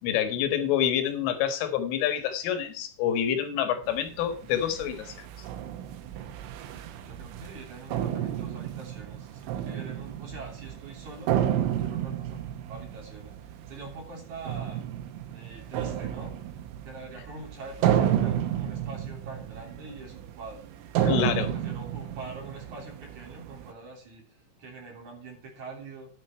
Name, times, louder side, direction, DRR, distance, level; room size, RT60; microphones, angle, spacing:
voice 1, 0.0-5.2 21.0-21.5, left 9 dB, 85° left, 9 dB, 4.0 m, -27 dB
sound 1, 3.8-23.7, right 10 dB, 80° right, 3.6 m, -32 dB
voice 2, 7.1-12.4 12.6-14.8 15.3-16.4 16.8-20.6 21.3-24.2 24.6-26.1, right 3 dB, 40° right, 1 dB, 4.0 m, -44 dB
10.0 x 9.4 x 4.5 m, 0.38 s
omnidirectional pair, 5.6 m